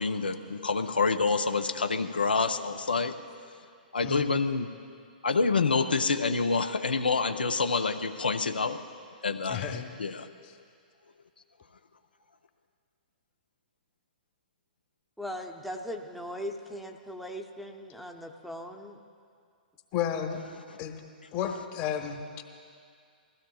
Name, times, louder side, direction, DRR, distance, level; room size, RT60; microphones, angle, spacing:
voice 1, 0.0-3.2 3.9-4.7 5.2-8.8 9.2-10.3, left 4 dB, 90° left, 7 dB, 0.5 m, -27 dB
voice 2, 9.4-9.9 10.4-10.5 19.9-20.4 20.8-21.0 21.3-22.4, left 8 dB, 35° left, 5 dB, 1.2 m, -32 dB
voice 3, 15.2-19.0, equal, ahead, 1 dB, 0.7 m, -39 dB
20.5 x 15.5 x 2.3 m, 2.3 s
hypercardioid pair, 120°, 5 cm